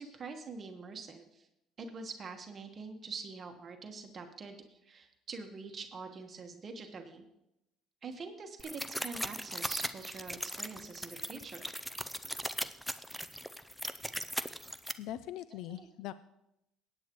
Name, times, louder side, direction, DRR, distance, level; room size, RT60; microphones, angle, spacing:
voice 1, 0.0-1.5 1.8-7.2 8.0-11.7 15.5-15.9, right 4 dB, 35° right, 4 dB, 1.2 m, -45 dB
sound 1, 8.6-14.9, equal, ahead, 0.5 m, -38 dB
voice 2, 15.0-16.1, left 12 dB, 75° left, 14 dB, 0.4 m, -41 dB
18.0 x 9.0 x 3.0 m, 0.86 s
cardioid pair, 110°, 0 cm